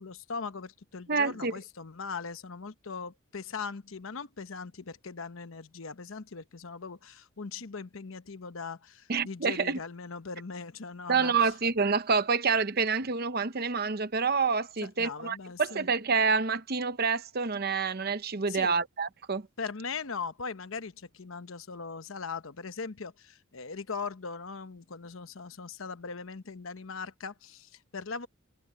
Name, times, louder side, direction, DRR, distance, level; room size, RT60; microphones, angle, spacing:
voice 1, 0.0-11.5 14.8-15.9 18.5-18.7 19.6-28.3, left 5 dB, 75° left, 0.9 m, -40 dB
voice 2, 1.1-1.5 9.1-9.8 11.1-19.4, right 5 dB, 45° right, 0.8 m, -27 dB
head